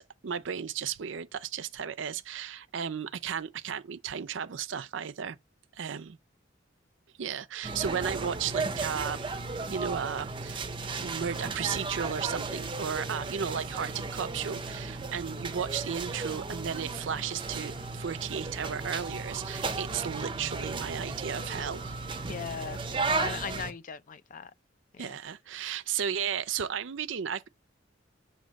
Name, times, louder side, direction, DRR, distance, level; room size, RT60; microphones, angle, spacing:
voice 1, 0.2-5.4 5.7-6.2 7.2-9.2 9.7-10.6 11.0-22.0 25.0-27.5, right 7 dB, 80° right, 0.5 m, -34 dB
sound 1, 7.6-23.7, right 3 dB, 25° right, 0.5 m, -35 dB
voice 2, 22.3-22.8 23.0-24.5 24.9-25.0, left 6 dB, 45° left, 0.4 m, -37 dB
7.5 x 2.7 x 5.1 m
head